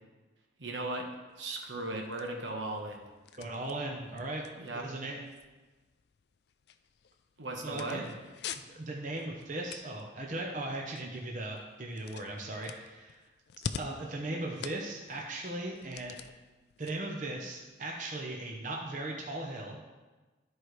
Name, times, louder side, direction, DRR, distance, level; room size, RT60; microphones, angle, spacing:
voice 1, 0.6-1.1 1.4-3.0 4.6-4.9 7.4-8.1, right 2 dB, 80° right, 1 dB, 1.1 m, -37 dB
sound 1, 1.3-18.3, left 6 dB, 60° left, 0.3 m, -48 dB
voice 2, 3.4-4.4 4.7-5.2 7.6-8.1 8.6-13.2 13.8-16.1 16.8-19.8, right 2 dB, 40° right, 0 dB, 0.8 m, -38 dB
12.5 x 4.6 x 3.2 m, 1.2 s
head